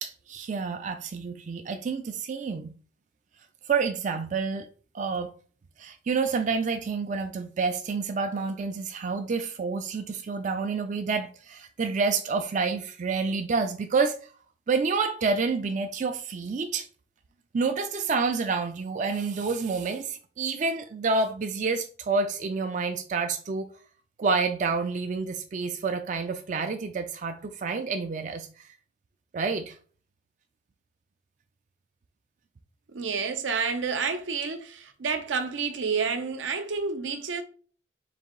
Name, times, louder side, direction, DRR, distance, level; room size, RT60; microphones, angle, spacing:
voice 1, 0.0-2.7 3.7-4.7 4.9-5.3 5.8-14.2 14.7-16.9 17.5-23.7 24.2-28.7 29.3-29.8, right 4 dB, 40° right, 0.3 m, -28 dB
voice 2, 32.9-37.4, right 5 dB, 80° right, 0.6 m, -29 dB
4.0 x 2.6 x 3.7 m
head